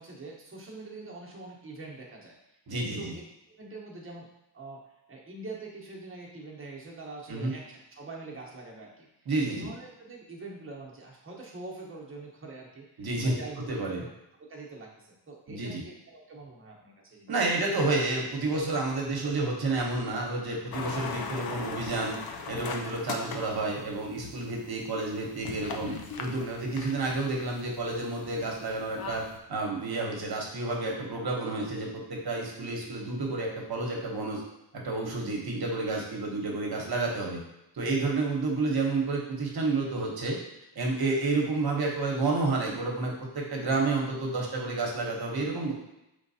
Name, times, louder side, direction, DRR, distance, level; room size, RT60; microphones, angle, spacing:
voice 1, 0.0-2.4 2.8-3.1 3.6-4.3 4.5-4.8 5.1-9.1 9.4-14.1 14.4-17.3 36.8-36.9, right 3 dB, 30° right, -3 dB, 0.9 m, -44 dB
voice 2, 2.7-3.2 7.3-7.5 9.3-9.7 13.0-13.3 13.7-14.0 15.5-15.8 17.3-22.2 22.5-34.4 34.7-37.4 37.7-40.4 40.7-45.7, right 3 dB, 55° right, -1 dB, 1.0 m, -30 dB
sound 1, 20.7-29.4, left 5 dB, 55° left, 0.5 m, -40 dB
4.5 x 3.3 x 2.7 m, 0.88 s
wide cardioid pair, 130°, 43 cm